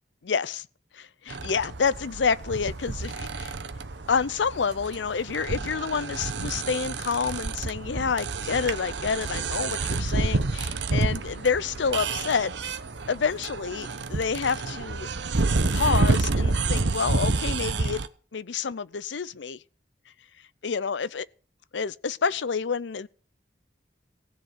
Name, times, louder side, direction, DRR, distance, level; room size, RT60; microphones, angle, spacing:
voice 1, 0.2-0.7 0.9-3.5 4.1-12.8 13.1-15.1 15.7-18.0 18.3-19.6 20.6-21.3 21.7-23.1, left 5 dB, 85° left, 0.6 m, -28 dB
sound 1, 1.3-18.1, right 3 dB, 80° right, 0.9 m, -29 dB
16.0 x 7.6 x 7.3 m
head